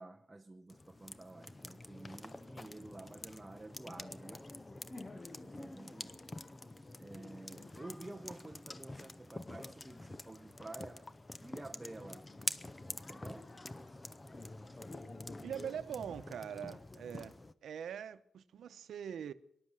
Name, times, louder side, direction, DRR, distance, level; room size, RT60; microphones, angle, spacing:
voice 1, 0.0-4.5 5.1-6.3 7.0-11.1 11.4-12.3 13.1-13.5, right 2 dB, 15° right, 0.8 m, -50 dB
sound 1, 0.7-17.5, left 2 dB, 20° left, 0.7 m, -47 dB
voice 2, 15.4-17.3 17.6-19.3, right 8 dB, 80° right, 0.9 m, -43 dB
19.5 x 12.0 x 6.3 m
wide cardioid pair, 120°, 0 cm